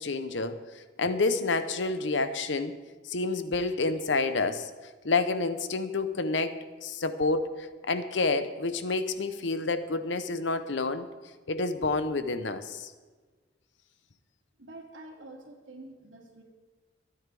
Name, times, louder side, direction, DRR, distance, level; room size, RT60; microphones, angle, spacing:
voice 1, 0.0-2.7 3.1-4.7 5.0-11.1 11.5-12.9, left 3 dB, 70° left, 11 dB, 0.8 m, -29 dB
voice 2, 14.6-16.4, right 2 dB, 85° right, 0 dB, 2.6 m, -47 dB
25.5 x 9.5 x 3.5 m, 1.4 s
head